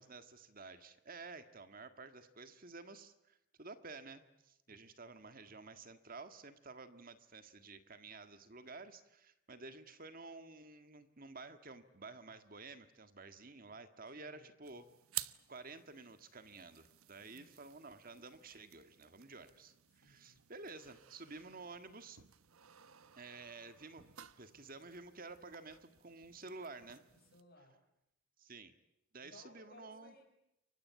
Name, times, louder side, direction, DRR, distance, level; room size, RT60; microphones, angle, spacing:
voice 1, 0.0-14.8 15.5-22.2 23.2-24.0 24.4-27.0 28.4-28.7 29.1-30.1, right 3 dB, 40° right, 10 dB, 1.7 m, -52 dB
voice 2, 14.1-14.5 17.3-17.6 19.9-20.4 27.1-27.8 29.2-30.2, left 2 dB, 50° left, 3 dB, 7.8 m, -62 dB
sound 1, 14.6-27.4, right 14 dB, 85° right, 1.1 m, -53 dB
29.5 x 24.5 x 8.3 m, 0.83 s
head